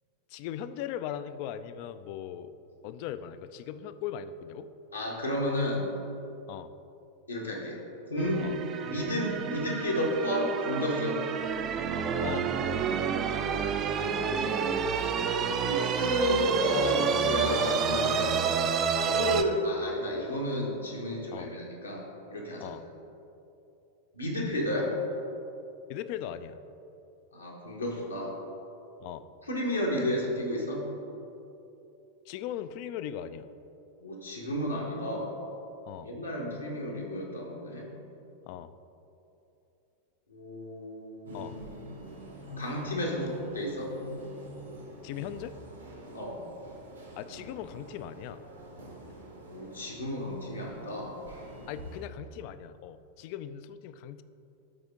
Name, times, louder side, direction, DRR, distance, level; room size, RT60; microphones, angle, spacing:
voice 1, 0.3-2.5 2.8-4.7 6.5-6.7 8.4-8.5 12.2-12.5 15.4-15.7 21.3-21.5 22.6-22.9 25.9-26.6 29.0-29.3 32.3-33.5 35.9-36.1 38.5-38.7 41.3-41.6 45.0-45.5 47.2-48.4 51.7-54.2, left 10 dB, 45° left, 13 dB, 0.3 m, -39 dB
voice 2, 4.9-5.8 7.3-7.8 8.1-8.5 8.8-11.2 14.1-14.8 15.7-18.5 19.0-22.0 22.3-22.7 24.2-24.9 27.3-28.3 29.5-30.8 34.0-35.3 36.0-37.9 40.3-41.4 42.6-43.9 46.1-46.4 49.5-51.1, equal, 80° left, -3 dB, 1.4 m, -32 dB
sound 1, 8.2-19.4, right 6 dB, 30° right, 0.4 m, -29 dB
sound 2, 41.3-52.0, equal, 75° right, 1.2 m, -46 dB
12.5 x 4.2 x 3.6 m, 2.9 s
figure-of-eight pair, 90°, 0 cm